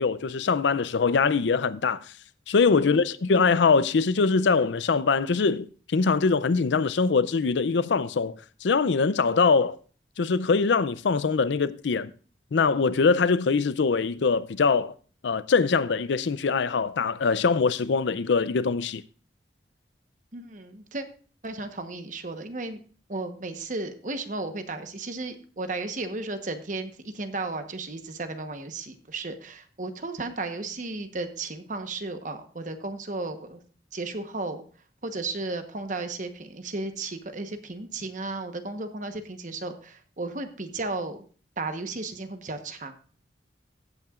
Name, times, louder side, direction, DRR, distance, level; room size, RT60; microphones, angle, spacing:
voice 1, 0.0-2.0 2.5-5.7 5.9-9.8 10.2-12.1 12.5-14.9 15.2-19.0, left 4 dB, 80° left, 0.5 m, -23 dB
voice 2, 20.3-21.0 21.4-22.8 23.1-33.6 33.9-34.6 35.0-41.2 41.6-42.9, right 3 dB, 45° right, 1.1 m, -34 dB
15.5 x 8.7 x 2.4 m
head